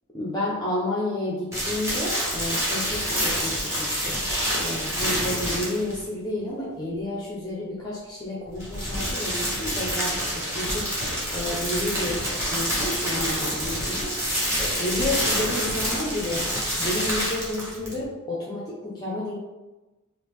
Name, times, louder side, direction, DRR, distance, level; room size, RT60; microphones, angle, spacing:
voice 1, 0.1-4.2 4.6-14.1 14.6-16.4 16.7-19.3, left 1 dB, 20° left, -6 dB, 0.6 m, -31 dB
sound 1, 1.5-6.0 8.5-18.0, equal, 15° right, 1.0 m, -27 dB
3.4 x 2.5 x 3.4 m, 1.1 s
head